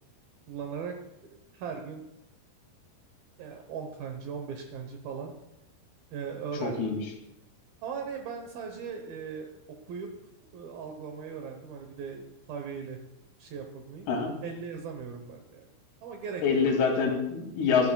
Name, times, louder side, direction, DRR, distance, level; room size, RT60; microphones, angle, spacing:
voice 1, 0.5-0.9 1.5-2.0 3.4-5.3 6.1-7.0 7.8-9.5 9.9-10.1 10.5-13.0 13.4-14.1 14.4-15.7 16.0-17.0, right 6 dB, 85° right, 4 dB, 2.0 m, -38 dB
voice 2, 6.6-7.0 14.1-14.3 16.4-17.9, left 5 dB, 80° left, 1 dB, 5.3 m, -25 dB
24.0 x 13.0 x 2.3 m, 0.87 s
omnidirectional pair, 5.9 m